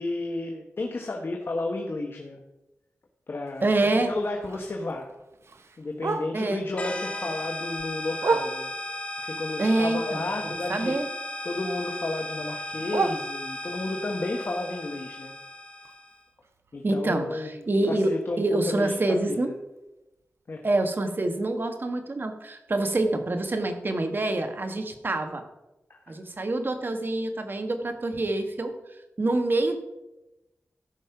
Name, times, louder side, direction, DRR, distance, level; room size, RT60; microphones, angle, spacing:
voice 1, 0.0-2.4 3.3-3.7 4.1-5.1 5.8-8.7 9.2-10.9 11.4-15.3 16.7-17.5 17.9-19.5 20.5-20.6 25.9-26.2, left 2 dB, 55° left, 2 dB, 1.1 m, -32 dB
Bark, 3.5-6.7 7.1-9.0 9.4-11.3 11.5-13.9 14.3-18.2 18.5-18.6 18.9-19.3 19.8-19.9 20.2-20.3 20.8-20.9, right 4 dB, 65° right, 0.8 m, -35 dB
voice 2, 3.6-4.1 6.3-6.6 9.6-11.1 16.8-19.5 20.6-25.4 26.1-28.7 29.2-29.8, right 2 dB, 45° right, 7 dB, 1.4 m, -26 dB
sound 1, 6.8-16.2, left 1 dB, 30° left, 1.6 m, -36 dB
13.5 x 5.5 x 5.8 m, 0.98 s
wide cardioid pair, 85°, 5 cm